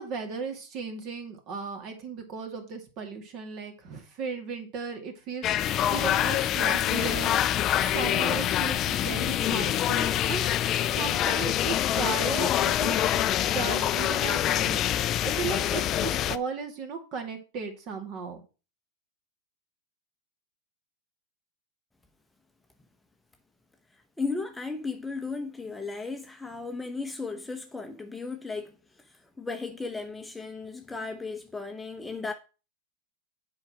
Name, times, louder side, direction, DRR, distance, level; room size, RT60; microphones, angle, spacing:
voice 1, 0.0-10.5 10.8-18.4, right 5 dB, 45° right, 2.3 m, -36 dB
sound 1, 5.4-16.4, left 11 dB, 35° left, 0.5 m, -25 dB
voice 2, 24.2-28.7 29.4-32.3, left 4 dB, 10° left, 0.9 m, -35 dB
7.6 x 4.8 x 6.1 m
hypercardioid pair, 115°, 0 cm